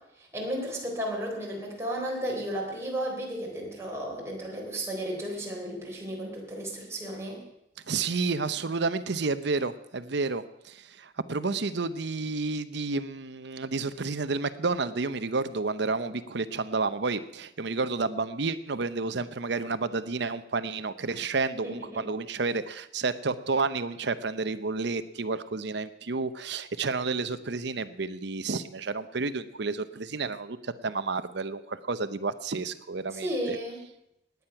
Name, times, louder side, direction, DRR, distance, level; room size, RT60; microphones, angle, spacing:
voice 1, 0.2-7.4 21.6-22.1 33.1-33.8, equal, 15° right, -3 dB, 3.9 m, -34 dB
voice 2, 7.9-33.6, right 4 dB, 70° right, 13 dB, 0.8 m, -30 dB
19.0 x 9.4 x 5.8 m, 0.83 s
head